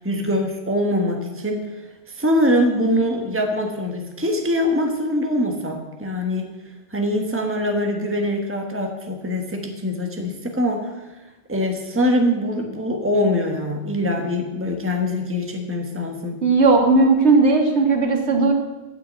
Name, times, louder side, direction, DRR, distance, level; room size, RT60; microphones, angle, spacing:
voice 1, 0.0-1.8 2.1-6.5 6.9-10.9 11.5-16.4, left 1 dB, 10° right, 2 dB, 1.4 m, -23 dB
voice 2, 16.4-18.5, right 3 dB, 85° right, 2 dB, 2.0 m, -16 dB
12.5 x 6.6 x 8.7 m, 1.1 s
omnidirectional pair, 1.1 m